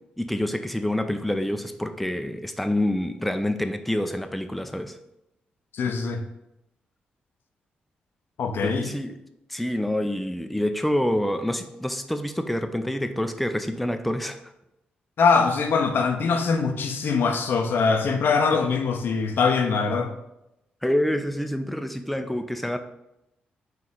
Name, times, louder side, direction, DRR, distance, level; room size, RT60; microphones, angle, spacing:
voice 1, 0.2-5.0 8.6-9.2 9.5-14.4 18.5-18.7 20.8-22.8, left 1 dB, ahead, 8 dB, 0.3 m, -27 dB
voice 2, 5.7-6.2 8.4-8.9 15.2-20.2, left 5 dB, 65° left, 6 dB, 0.5 m, -22 dB
4.2 x 2.4 x 3.7 m, 0.87 s
supercardioid pair, 45°, 4 cm